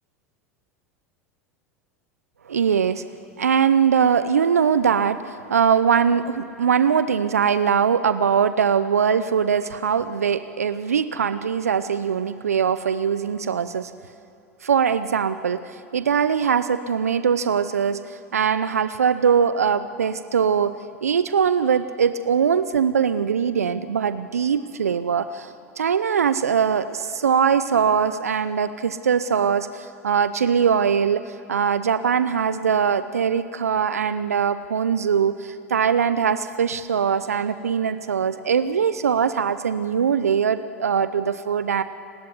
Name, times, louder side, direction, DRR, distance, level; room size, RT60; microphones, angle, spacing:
voice 1, 2.5-3.0 3.4-13.9 14.6-15.6 15.9-20.7 21.0-31.2 31.5-41.8, right 7 dB, 85° right, 13 dB, 0.8 m, -21 dB
29.5 x 18.0 x 9.8 m, 2.6 s
hypercardioid pair, 85°, 8 cm